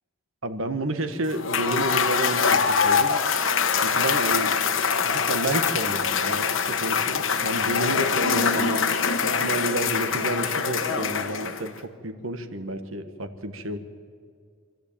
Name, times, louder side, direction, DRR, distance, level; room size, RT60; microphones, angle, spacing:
voice 1, 0.4-3.2 3.8-8.9 9.2-13.8, right 1 dB, 65° right, 9 dB, 1.4 m, -30 dB
Cheering / Applause / Crowd, 1.3-11.8, left 6 dB, 60° left, 1.1 m, -24 dB
26.0 x 13.5 x 8.7 m, 2.1 s
head